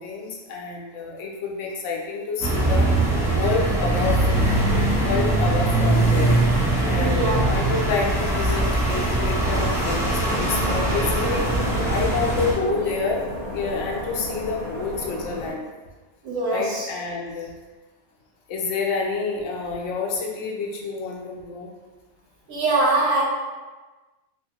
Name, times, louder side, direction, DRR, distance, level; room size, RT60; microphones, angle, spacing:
voice 1, 0.0-2.9 3.3-4.2 5.0-6.4 6.8-11.5 11.9-13.2 13.5-15.7 16.5-17.5 18.5-21.7, left 4 dB, 80° left, -1 dB, 0.9 m, -28 dB
sound 1, 2.4-12.5, right 2 dB, 5° right, 0.4 m, -21 dB
voice 2, 6.9-7.6 16.2-16.9 22.5-23.2, right 2 dB, 85° right, -5 dB, 1.2 m, -23 dB
sound 2, 10.2-15.5, left 1 dB, 40° left, 1.0 m, -33 dB
3.3 x 2.1 x 2.8 m, 1.3 s
omnidirectional pair, 1.3 m